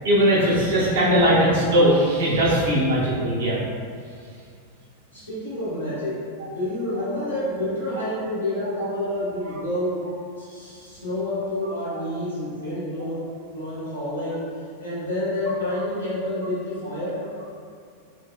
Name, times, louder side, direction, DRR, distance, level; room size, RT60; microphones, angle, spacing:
voice 1, 0.0-3.6, equal, 60° right, -6 dB, 0.6 m, -19 dB
voice 2, 5.1-10.1 10.4-14.5 14.8-17.2, left 1 dB, 80° left, -10 dB, 1.3 m, -29 dB
3.9 x 2.1 x 2.3 m, 2.3 s
figure-of-eight pair, 90°, 0 cm